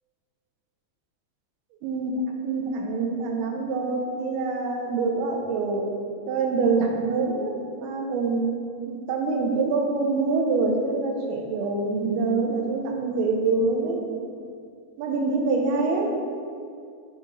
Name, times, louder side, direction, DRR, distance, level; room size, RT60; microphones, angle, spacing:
voice 1, 1.8-5.9 6.3-8.5 8.9-14.0 15.0-16.2, right 3 dB, 85° right, 2 dB, 2.6 m, -25 dB
6.7 x 5.2 x 3.0 m, 2.3 s
omnidirectional pair, 4.5 m